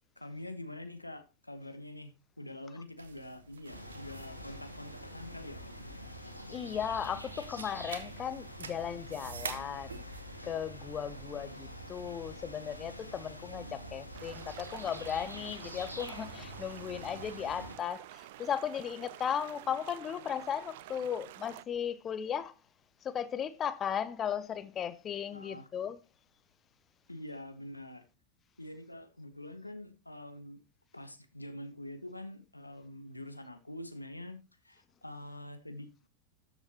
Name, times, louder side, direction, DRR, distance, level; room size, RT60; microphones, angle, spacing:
voice 1, 0.2-5.6 12.1-12.2 25.3-25.7 27.1-28.1 28.6-30.6 30.9-36.1, left 1 dB, 85° left, 1.2 m, -45 dB
sound 1, 3.0-10.3, right 6 dB, 70° right, 1.1 m, -48 dB
sound 2, 3.7-17.8, equal, 90° right, 1.7 m, -46 dB
voice 2, 6.5-10.0 10.4-22.5 23.0-26.0, left 8 dB, 25° left, 0.6 m, -36 dB
sound 3, 14.1-21.6, right 15 dB, 50° right, 0.4 m, -50 dB
13.0 x 6.9 x 2.9 m
figure-of-eight pair, 90°, 0 cm